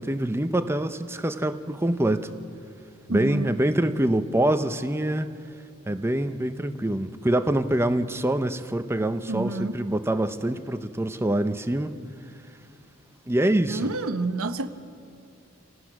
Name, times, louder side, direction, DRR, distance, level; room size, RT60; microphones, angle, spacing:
voice 1, 0.0-2.3 3.1-5.3 5.9-11.9 13.3-13.9, right 1 dB, 10° right, 9 dB, 0.7 m, -25 dB
voice 2, 3.1-3.6 9.3-9.8 13.7-14.7, right 2 dB, 90° right, 9 dB, 1.0 m, -29 dB
29.5 x 18.0 x 6.0 m, 2.6 s
head